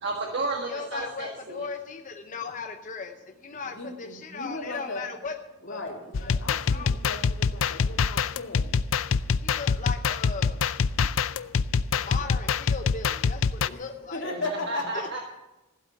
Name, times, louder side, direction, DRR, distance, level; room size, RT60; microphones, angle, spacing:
voice 1, 0.0-1.6 14.2-15.2, right 2 dB, 55° right, 1 dB, 1.6 m, -32 dB
voice 2, 0.7-5.3 5.7-5.8 6.2-7.0 9.4-10.6 11.9-14.2 14.9-15.1, left 4 dB, 40° left, 4 dB, 0.9 m, -37 dB
voice 3, 3.5-5.0 5.6-8.7 13.7-13.8 14.1-14.9, left 2 dB, 60° left, -2 dB, 3.7 m, -37 dB
sound 1, 6.1-13.7, left 6 dB, 80° left, 0.5 m, -25 dB
15.5 x 8.2 x 9.1 m, 1.0 s
head